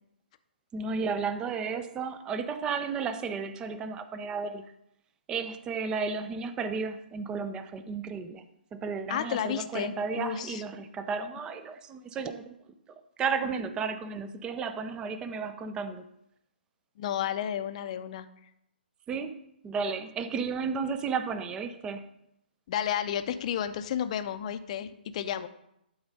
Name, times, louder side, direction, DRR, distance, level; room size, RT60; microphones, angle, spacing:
voice 1, 0.7-4.7 5.3-8.4 8.7-12.6 13.2-16.0 19.1-19.4 19.6-22.1, right 5 dB, 15° right, 10 dB, 0.5 m, -33 dB
voice 2, 9.1-10.6 17.0-18.3 22.7-25.5, left 9 dB, 40° left, 11 dB, 0.6 m, -32 dB
12.0 x 4.0 x 5.2 m, 0.80 s
figure-of-eight pair, 125°, 6 cm